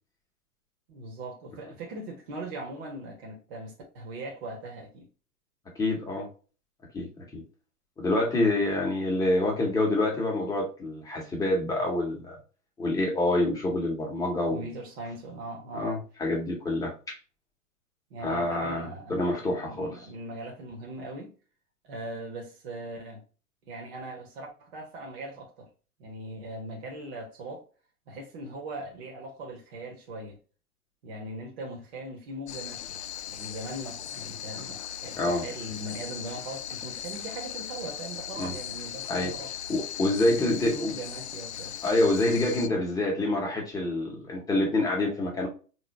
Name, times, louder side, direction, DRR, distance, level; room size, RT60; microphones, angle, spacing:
voice 1, 0.9-5.1 14.5-15.9 18.1-21.3 21.8-23.2 23.7-25.7 26.0-27.6 28.1-30.4 31.0-33.0 33.3-39.5 40.3-41.7, right 1 dB, 40° right, 1.3 m, -40 dB
voice 2, 5.8-6.3 6.9-7.4 8.0-12.4 12.8-14.6 15.7-17.1 18.2-20.0 35.2-35.4 38.4-38.5 39.1-39.3 39.7-40.9 41.8-45.5, left 2 dB, 10° left, 1.0 m, -27 dB
sound 1, 32.5-42.7, left 9 dB, 50° left, 0.4 m, -38 dB
4.1 x 3.2 x 2.8 m
figure-of-eight pair, 110°, 46 cm